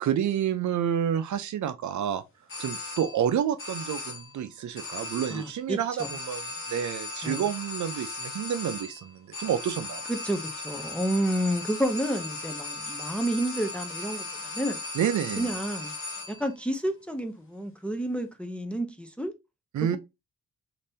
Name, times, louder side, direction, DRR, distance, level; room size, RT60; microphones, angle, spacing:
voice 1, 0.0-2.2 2.6-10.1 14.9-15.5 19.7-20.0, right 9 dB, 60° right, 0.5 m, -29 dB
sound 1, 2.5-3.3 3.6-4.4 4.8-5.6 6.0-16.5, left 3 dB, 40° left, 1.0 m, -37 dB
voice 2, 5.3-6.1 7.2-7.4 10.1-14.3 14.5-14.8 15.4-15.9 16.3-19.3 19.8-20.0, right 1 dB, 5° left, 0.4 m, -30 dB
3.4 x 2.6 x 2.7 m
wide cardioid pair, 120°, 32 cm